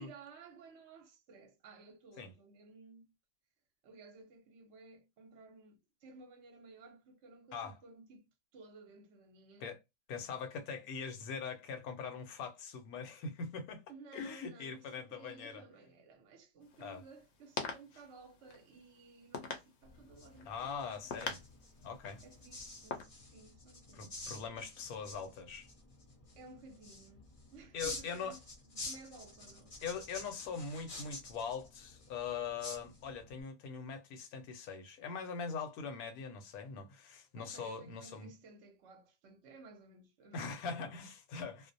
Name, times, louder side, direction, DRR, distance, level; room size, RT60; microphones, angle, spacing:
voice 1, 0.0-3.1 3.8-8.3 8.5-9.7 13.9-21.2 22.2-24.2 26.4-28.4 28.7-29.8 37.3-40.9, right 3 dB, 60° right, 0.8 m, -56 dB
voice 2, 10.1-13.8 14.1-15.6 16.8-17.0 20.5-21.4 21.8-22.2 23.9-25.7 27.7-28.4 29.8-38.3 40.3-41.7, left 5 dB, 80° left, 1.1 m, -42 dB
sound 1, 16.6-23.0, left 5 dB, 60° left, 0.8 m, -45 dB
sound 2, 19.8-33.4, left 2 dB, 45° left, 0.4 m, -49 dB
2.5 x 2.0 x 2.5 m
omnidirectional pair, 1.5 m